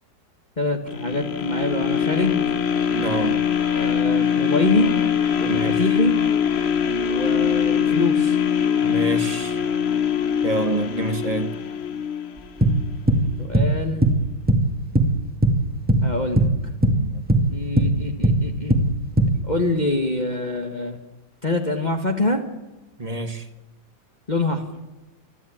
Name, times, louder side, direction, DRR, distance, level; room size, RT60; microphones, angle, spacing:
voice 1, 0.6-2.4 3.7-4.9 5.4-6.2 7.0-8.4 13.4-14.1 16.0-16.5 17.5-18.7 19.4-21.0 21.4-22.4 24.3-24.6, left 2 dB, 25° left, 1.8 m, -25 dB
sound 1, 0.9-13.0 13.5-13.6, left 8 dB, 45° left, 0.9 m, -22 dB
voice 2, 2.9-3.4 5.5-5.8 8.8-9.6 10.4-11.5 16.8-17.2 19.1-19.4 23.0-23.5, right 2 dB, 20° right, 1.3 m, -28 dB
sound 2, 12.4-15.6 15.9-16.1 16.4-19.4, right 1 dB, 5° right, 2.1 m, -18 dB
28.0 x 11.0 x 8.8 m
omnidirectional pair, 2.1 m